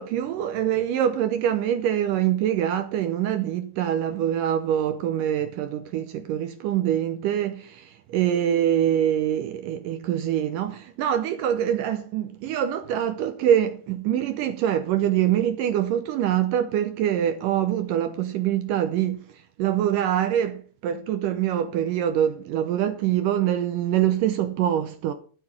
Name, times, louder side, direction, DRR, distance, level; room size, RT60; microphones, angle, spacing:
voice 1, 0.0-25.1, right 10 dB, 80° right, 2.0 m, -24 dB
12.5 x 6.9 x 5.9 m
omnidirectional pair, 4.4 m